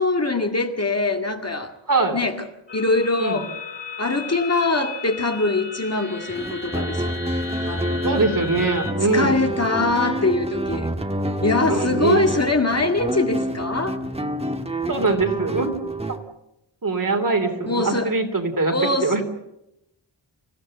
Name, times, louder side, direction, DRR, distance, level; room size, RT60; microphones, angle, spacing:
voice 1, 0.0-1.7 2.1-2.4 2.7-3.5 4.0-7.1 7.6-8.1 9.0-10.9 11.4-14.0 17.7-18.1 18.7-19.2, left 3 dB, 35° left, 4 dB, 2.1 m, -23 dB
sound 1, 2.7-8.9, left 4 dB, 75° left, 3.7 m, -35 dB
sound 2, 6.3-16.2, equal, 15° right, 1.7 m, -28 dB
voice 2, 8.0-9.4 11.7-12.3 14.9-15.8 16.8-18.8 19.0-19.2, right 3 dB, 45° right, 5 dB, 3.4 m, -22 dB
27.5 x 15.0 x 7.9 m, 0.86 s
wide cardioid pair, 85°, 46 cm